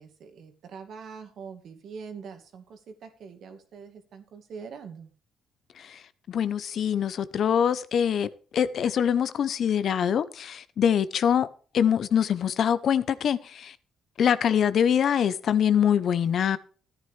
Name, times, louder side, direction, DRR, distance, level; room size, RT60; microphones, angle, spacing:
voice 1, 0.0-5.1, right 6 dB, 70° right, 2.2 m, -43 dB
voice 2, 6.3-11.5 11.7-13.7 14.2-16.6, left 8 dB, 60° left, 0.7 m, -24 dB
14.0 x 9.6 x 3.4 m
cardioid pair, 90°, 0 cm